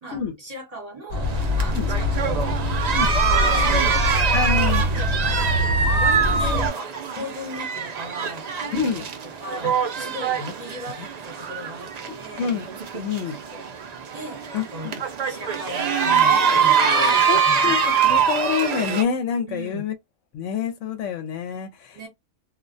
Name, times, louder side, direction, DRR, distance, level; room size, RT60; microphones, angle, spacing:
voice 1, 0.0-2.6 2.9-3.9 4.3-9.1 9.4-9.7 10.0-11.9 12.2-12.5 13.5-13.7 14.1-14.9 15.3-17.8 19.5-19.8 21.9-22.1, equal, 35° right, 1.1 m, -37 dB
sound 1, 1.1-6.7, left 1 dB, 55° right, 0.9 m, -24 dB
sound 2, 1.2-19.0, right 6 dB, 80° right, 0.3 m, -24 dB
voice 2, 4.3-4.8 8.7-9.0 10.4-10.5 12.1-12.7 12.9-13.4 14.5-15.0 17.3-19.9 20.3-22.1, left 7 dB, 75° left, 0.9 m, -27 dB
2.3 x 2.1 x 2.5 m
omnidirectional pair, 1.3 m